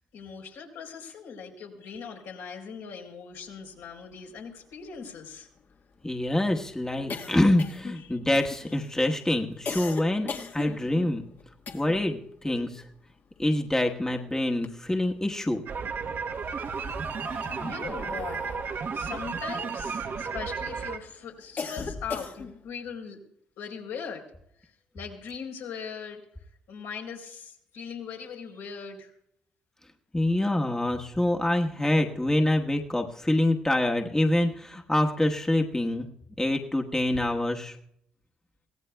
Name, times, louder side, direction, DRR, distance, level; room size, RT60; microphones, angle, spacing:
voice 1, 0.1-5.5 8.0-8.2 16.7-16.9 17.6-18.4 18.7-23.2 23.6-24.2 24.6-26.2 26.7-29.1, left 6 dB, 80° left, 0 dB, 3.9 m, -40 dB
sound 1, 4.0-4.1 4.3-4.4 4.7-12.2 12.5-14.0 14.4-15.3 16.1-20.6 21.0-22.7, left 4 dB, 50° left, 1.5 m, -40 dB
voice 2, 6.0-11.3 11.7-12.9 13.4-15.6 17.3-17.4 30.1-36.1 36.4-37.8, left 1 dB, 10° left, 3 dB, 1.3 m, -26 dB
sound 2, 15.7-21.0, right 5 dB, 55° right, 1.1 m, -33 dB
23.5 x 17.0 x 2.3 m, 0.73 s
supercardioid pair, 55°, 4 cm